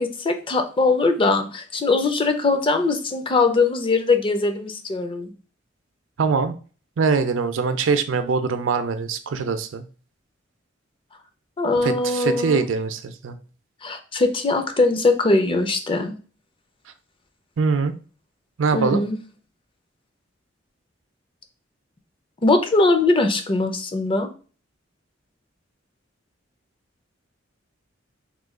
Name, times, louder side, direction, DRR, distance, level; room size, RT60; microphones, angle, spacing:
voice 1, 0.0-5.3 11.6-12.7 13.8-16.1 18.7-19.2 22.4-24.3, left 3 dB, 25° left, 6 dB, 0.5 m, -21 dB
voice 2, 6.2-6.5 7.0-9.9 11.8-13.4 17.6-17.9 18.6-19.1, right 5 dB, 80° right, 10 dB, 0.4 m, -23 dB
3.1 x 2.2 x 3.6 m, 0.38 s
head